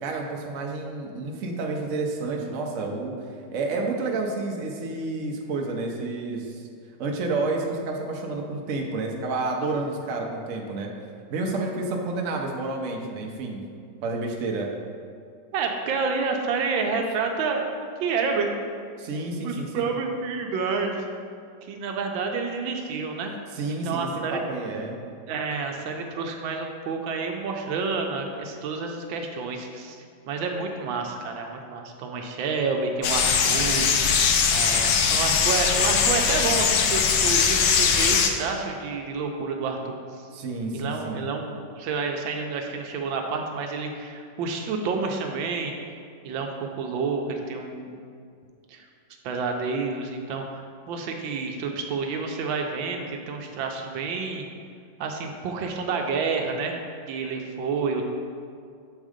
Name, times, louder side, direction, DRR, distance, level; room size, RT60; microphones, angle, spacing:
voice 1, 0.0-3.2 3.5-6.6 7.0-10.9 11.3-13.6 14.0-14.7 19.0-19.9 23.5-25.0 40.3-41.2, right 3 dB, 60° right, 1 dB, 0.8 m, -30 dB
voice 2, 15.5-18.5 19.4-20.9 21.6-23.3 23.8-24.4 25.3-33.9 34.5-40.0 40.7-45.7 46.2-48.0 48.7-48.8 49.2-54.5 55.0-56.7 57.1-58.0, right 4 dB, 80° right, 3 dB, 1.3 m, -29 dB
sound 1, 33.0-38.3, left 6 dB, 75° left, 0.9 m, -21 dB
7.2 x 3.7 x 4.9 m, 2.3 s
omnidirectional pair, 2.2 m